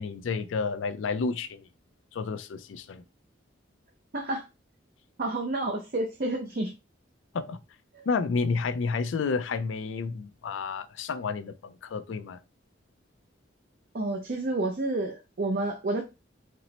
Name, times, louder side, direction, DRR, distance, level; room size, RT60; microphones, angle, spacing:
voice 1, 0.0-1.7 2.1-3.0 7.3-7.6 8.1-12.4, left 4 dB, 90° left, 0.4 m, -30 dB
voice 2, 5.2-6.7 7.9-8.0 13.9-16.0, right 2 dB, 50° right, 0.6 m, -30 dB
4.2 x 2.0 x 4.0 m
head